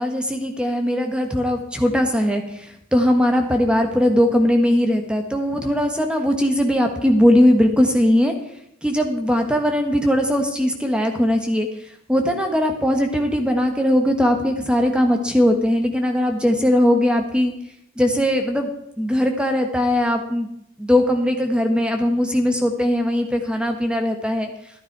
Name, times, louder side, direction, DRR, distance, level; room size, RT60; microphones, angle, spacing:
voice 1, 0.0-8.3 8.8-11.7 12.1-17.5 18.0-18.7 19.0-20.5 20.8-24.5, equal, 5° right, 5 dB, 1.4 m, -19 dB
13.0 x 11.5 x 4.7 m, 0.77 s
head